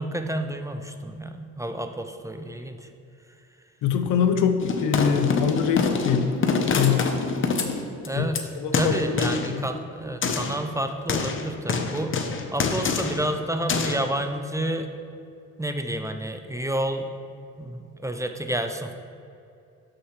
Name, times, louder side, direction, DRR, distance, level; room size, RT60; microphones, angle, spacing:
voice 1, 0.0-2.9 8.1-8.4 8.7-14.9 15.6-17.1 17.6-18.9, right 1 dB, 10° right, 6 dB, 0.5 m, -30 dB
voice 2, 3.8-6.3 6.7-7.1 8.2-8.3 8.6-9.6, left 7 dB, 85° left, 7 dB, 0.8 m, -24 dB
sound 1, 4.6-8.4 8.7-9.5 10.2-10.6 11.1-13.3 13.7-14.0, left 5 dB, 40° left, 0.9 m, -26 dB
12.5 x 6.0 x 3.2 m, 2.6 s
cardioid pair, 90°, 30 cm